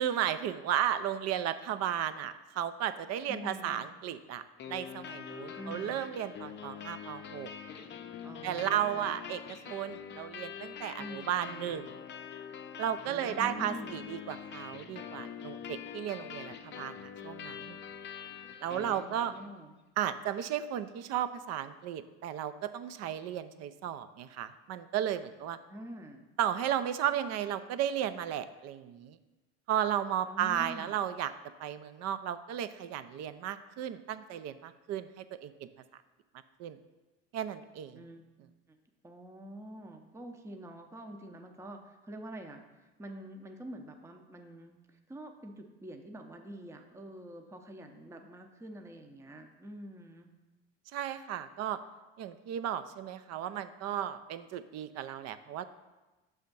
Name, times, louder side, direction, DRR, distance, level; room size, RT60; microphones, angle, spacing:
voice 1, 0.0-7.5 8.4-11.9 12.8-17.8 18.6-19.3 20.0-25.6 26.4-29.2 29.7-31.3 31.6-35.7 36.6-36.8 37.3-38.0 50.9-51.8 52.2-55.6, right 10 dB, 55° right, 12 dB, 0.5 m, -34 dB
voice 2, 3.3-3.8 5.6-6.0 8.2-9.1 11.0-11.6 13.0-14.0 18.7-19.8 25.7-26.3 30.3-31.0 37.9-38.2 39.0-50.3, equal, 10° right, 4 dB, 0.6 m, -46 dB
sound 1, 4.6-19.6, left 8 dB, 35° left, 0.5 m, -44 dB
6.4 x 3.5 x 5.3 m, 1.1 s
supercardioid pair, 90°, 31 cm